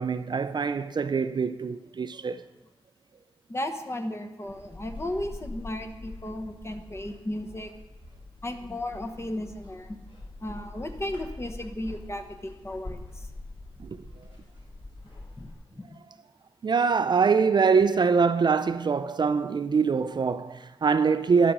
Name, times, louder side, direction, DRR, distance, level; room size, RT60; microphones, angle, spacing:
voice 1, 0.0-2.4 13.8-14.0 16.6-21.5, right 5 dB, 50° right, 0.4 m, -24 dB
voice 2, 3.5-7.7 8.4-10.0 10.4-13.3 15.4-15.5 15.7-16.0, left 1 dB, 25° left, 1.1 m, -35 dB
sound 1, 4.5-15.5, left 2 dB, 55° left, 3.9 m, -44 dB
12.5 x 5.2 x 6.0 m
cardioid pair, 75°, 10 cm